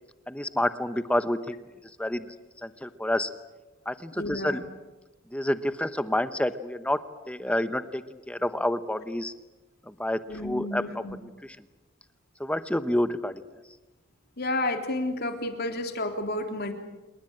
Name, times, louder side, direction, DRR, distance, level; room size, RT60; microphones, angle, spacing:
voice 1, 0.3-1.6 2.0-2.3 2.6-3.3 3.9-4.6 5.3-7.0 7.3-9.3 10.0-11.0 12.4-13.4, left 1 dB, 5° left, 11 dB, 0.9 m, -28 dB
voice 2, 4.2-4.7 10.3-11.2 14.4-16.7, left 2 dB, 55° left, 5 dB, 3.5 m, -31 dB
28.0 x 21.5 x 8.8 m, 1.1 s
head